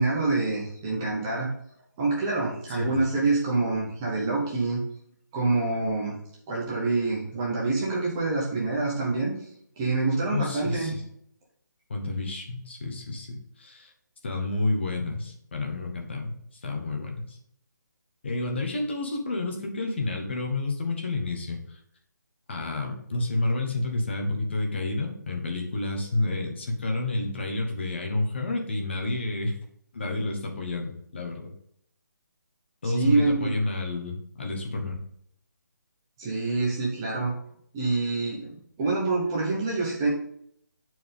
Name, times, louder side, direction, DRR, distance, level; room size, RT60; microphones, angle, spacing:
voice 1, 0.0-1.5 2.0-4.8 5.3-6.1 6.5-9.5 9.8-10.9 32.8-33.5 36.2-37.3 37.7-40.1, right 3 dB, 10° right, -4 dB, 0.9 m, -26 dB
voice 2, 10.2-11.0 11.9-13.9 14.2-16.3 16.6-17.4 18.2-21.8 22.5-29.6 29.9-31.5 32.8-35.0, left 2 dB, 35° left, 2 dB, 1.2 m, -30 dB
8.4 x 4.5 x 3.6 m, 0.68 s
hypercardioid pair, 180°, 10 cm